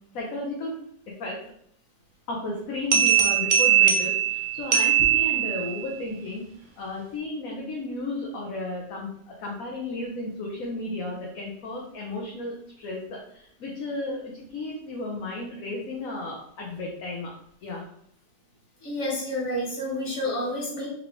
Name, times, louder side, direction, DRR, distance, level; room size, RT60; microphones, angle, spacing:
voice 1, 0.1-0.7 1.2-1.4 2.3-17.3 17.6-17.9, left 2 dB, 60° left, -2 dB, 1.1 m, -34 dB
sound 1, 2.9-5.9, right 9 dB, 60° right, 0.5 m, -21 dB
voice 2, 18.8-20.9, left 1 dB, 45° left, -5 dB, 1.8 m, -29 dB
3.6 x 3.5 x 3.6 m, 0.67 s
omnidirectional pair, 1.8 m